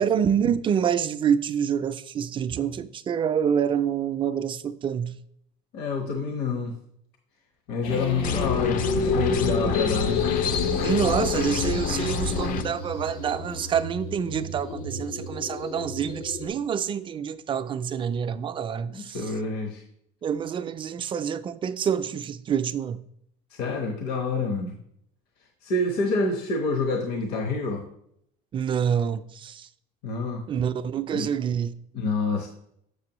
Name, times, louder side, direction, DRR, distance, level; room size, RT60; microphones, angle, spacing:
voice 1, 0.0-5.2 10.8-19.3 20.2-23.0 28.5-29.7 30.5-31.8, right 8 dB, 25° right, 0.3 m, -27 dB
voice 2, 5.7-6.7 7.7-10.2 18.9-19.8 23.5-24.7 25.6-27.8 30.0-30.4 31.1-31.3 31.9-32.5, left 3 dB, 65° left, 1.0 m, -27 dB
sound 1, 7.8-16.5, left 4 dB, 85° left, 1.2 m, -30 dB
sound 2, 8.2-12.6, left 6 dB, 50° left, 0.6 m, -29 dB
6.8 x 6.7 x 3.0 m
cardioid pair, 120°, 19 cm